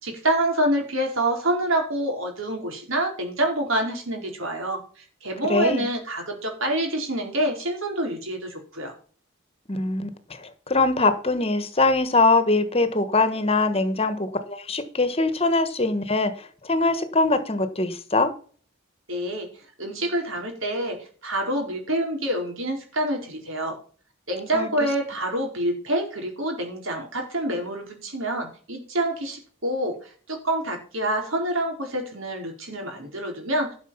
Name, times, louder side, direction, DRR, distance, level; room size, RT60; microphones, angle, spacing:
voice 1, 0.0-8.9 19.1-19.5 19.8-23.8 24.3-30.0 30.3-33.7, right 1 dB, 70° right, 2 dB, 4.5 m, -27 dB
voice 2, 5.5-5.9 9.7-18.3 24.5-24.7, left 3 dB, 30° left, 10 dB, 1.3 m, -22 dB
12.0 x 6.2 x 5.7 m, 0.42 s
head